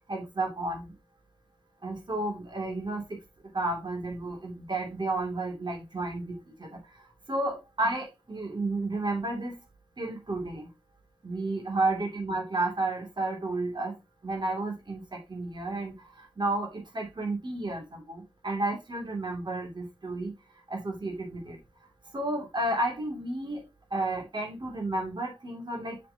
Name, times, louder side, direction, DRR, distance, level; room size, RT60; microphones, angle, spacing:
voice 1, 0.1-0.9 1.8-3.2 3.5-6.8 7.3-9.6 10.0-10.7 11.2-13.9 14.2-20.3 20.7-21.6 22.1-26.0, right 2 dB, 55° right, 2.6 m, -32 dB
7.1 x 6.9 x 2.8 m
wide cardioid pair, 65°, 9 cm